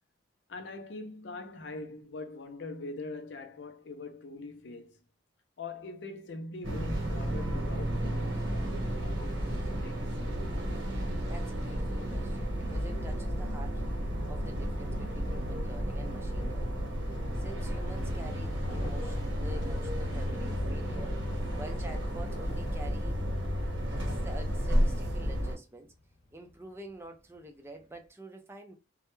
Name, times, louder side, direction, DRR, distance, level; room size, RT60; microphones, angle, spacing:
voice 1, 0.5-5.0 5.6-10.1, left 3 dB, 65° left, 0.5 m, -42 dB
sound 1, 6.6-25.5, equal, 90° right, 1.0 m, -32 dB
voice 2, 11.3-13.8 14.3-16.9 17.4-21.2 21.6-23.2 23.9-25.9 26.3-28.7, right 1 dB, 15° right, 0.4 m, -47 dB
sound 2, 15.1-28.1, left 1 dB, 35° left, 0.8 m, -51 dB
2.2 x 2.1 x 2.9 m
head